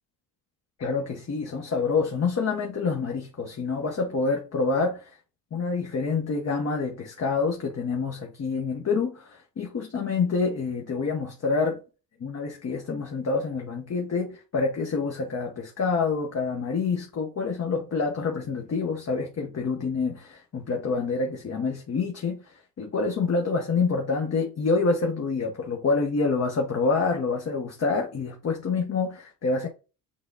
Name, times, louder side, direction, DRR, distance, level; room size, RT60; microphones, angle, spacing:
voice 1, 0.8-5.2 5.5-11.8 12.2-29.7, left 4 dB, 35° left, 1.0 m, -27 dB
6.3 x 2.3 x 3.6 m
supercardioid pair, 80°, 46 cm